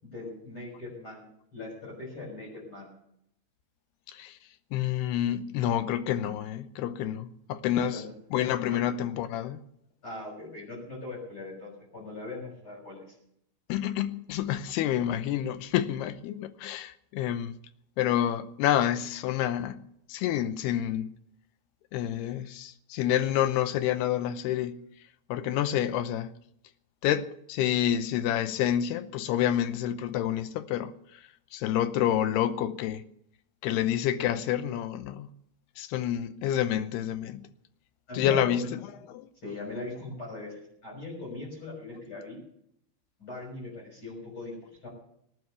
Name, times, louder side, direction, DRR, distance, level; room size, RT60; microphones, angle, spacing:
voice 1, 0.0-2.9 7.7-8.1 8.7-8.8 10.0-13.1 38.1-38.7 39.4-42.4 43.2-44.9, left 2 dB, 30° left, 7.1 m, -40 dB
voice 2, 4.1-4.4 4.7-8.0 8.3-9.6 13.7-17.5 18.0-19.8 20.1-21.1 21.9-24.8 25.3-26.4 27.0-30.9 31.5-33.0 33.6-35.3 35.8-37.4 38.1-38.8 39.1-39.3, left 11 dB, 80° left, 2.7 m, -28 dB
19.0 x 9.4 x 7.0 m
omnidirectional pair, 4.9 m